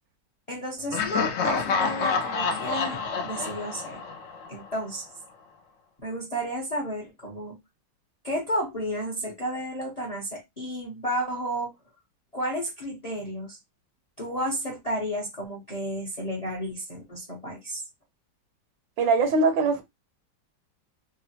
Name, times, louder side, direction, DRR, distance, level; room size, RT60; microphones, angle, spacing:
voice 1, 0.5-4.0 4.5-5.1 6.0-7.6 8.2-11.7 12.3-13.6 14.2-17.8, equal, 40° left, 0.6 m, -32 dB
Laughter, 0.9-4.8, left 4 dB, 90° left, 0.6 m, -28 dB
voice 2, 19.0-19.8, right 3 dB, 85° right, 1.4 m, -21 dB
3.6 x 2.0 x 2.8 m
omnidirectional pair, 2.0 m